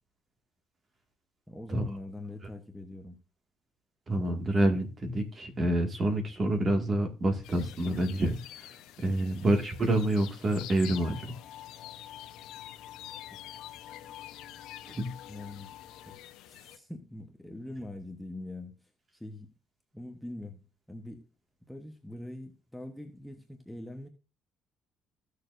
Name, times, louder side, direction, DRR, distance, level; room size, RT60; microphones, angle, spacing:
voice 1, 1.5-3.2 9.2-9.5 13.3-13.5 15.3-15.7 16.0-16.2 16.5-19.5 19.9-20.6 20.9-21.3 21.7-24.1, left 1 dB, ahead, 1.1 m, -43 dB
voice 2, 4.1-11.4 14.9-15.2, right 1 dB, 30° right, 2.0 m, -28 dB
sound 1, 7.4-16.8, left 13 dB, 85° left, 0.9 m, -48 dB
sound 2, 10.9-16.2, left 11 dB, 50° left, 1.3 m, -49 dB
15.5 x 6.7 x 2.6 m
cardioid pair, 140°, 0 cm